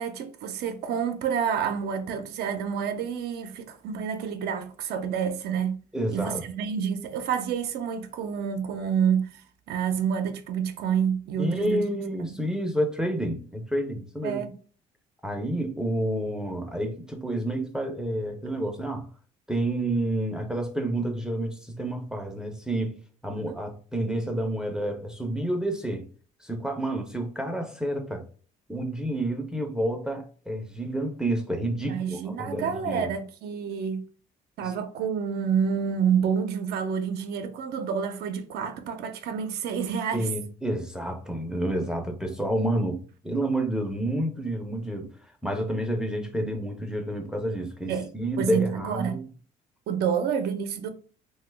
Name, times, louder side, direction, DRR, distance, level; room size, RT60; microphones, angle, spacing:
voice 1, 0.0-5.8 6.1-11.8 12.3-12.4 14.2-14.5 23.3-23.6 31.8-34.0 34.6-40.3 47.9-48.1 48.4-49.2 49.9-50.9, right 7 dB, 70° right, 0.5 m, -28 dB
voice 2, 5.9-6.4 11.4-14.4 15.2-19.1 19.5-22.9 23.2-26.0 26.4-28.2 28.7-33.1 34.6-34.7 40.1-45.1 45.4-49.3, right 1 dB, 5° right, 0.5 m, -29 dB
2.9 x 2.2 x 3.2 m
cardioid pair, 110°, 17 cm